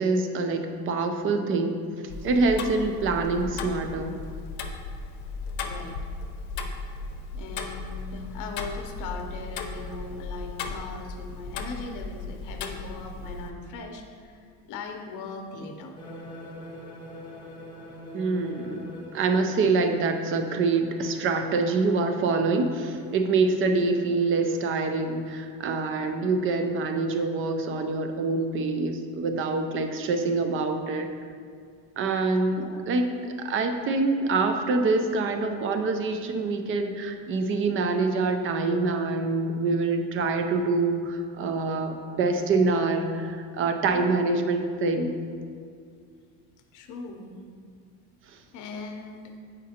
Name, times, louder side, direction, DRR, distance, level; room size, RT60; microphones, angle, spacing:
voice 1, 0.0-1.8 2.2-4.2 18.1-18.9 19.1-31.1 32.0-45.1, right 3 dB, 35° right, 6 dB, 0.5 m, -25 dB
Tick-tock, 2.1-13.5, left 3 dB, 85° left, 0.7 m, -36 dB
voice 2, 5.6-6.0 7.3-16.0 32.6-32.8 43.9-44.1 46.7-47.4 48.5-49.3, left 3 dB, 50° left, 4 dB, 0.8 m, -39 dB
sound 1, 16.0-25.8, equal, 10° left, 0.8 m, -45 dB
7.3 x 5.1 x 2.8 m, 2.2 s
cardioid pair, 140°, 38 cm